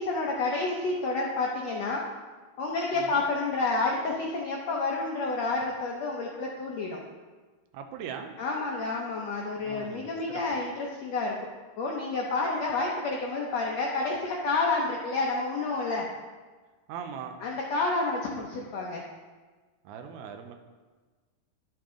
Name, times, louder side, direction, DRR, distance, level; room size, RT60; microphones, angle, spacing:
voice 1, 0.0-2.0 2.6-7.0 8.4-11.4 11.8-16.1 17.4-19.0, left 3 dB, 85° left, -1 dB, 1.5 m, -29 dB
voice 2, 7.7-8.4 9.5-10.6 16.9-17.4 19.8-20.5, right 7 dB, 75° right, 5 dB, 1.8 m, -40 dB
11.5 x 7.1 x 3.8 m, 1.3 s
omnidirectional pair, 4.2 m